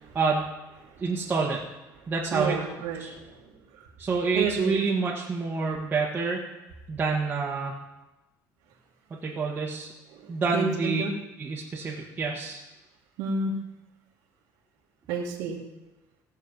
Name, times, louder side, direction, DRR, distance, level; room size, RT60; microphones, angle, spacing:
voice 1, 0.1-0.5 1.0-1.6 2.1-2.6 3.0-3.1 4.0-6.4 6.9-7.7 9.2-9.9 10.3-11.0 11.4-12.6, right 4 dB, 25° right, -5 dB, 1.5 m, -27 dB
voice 2, 2.3-3.3 3.7-3.8 4.3-4.8 10.1-11.1 13.2-13.5 15.1-15.6, right 4 dB, 85° right, -6 dB, 1.9 m, -30 dB
17.5 x 6.6 x 5.4 m, 1.0 s
cardioid pair, 145°, 7 cm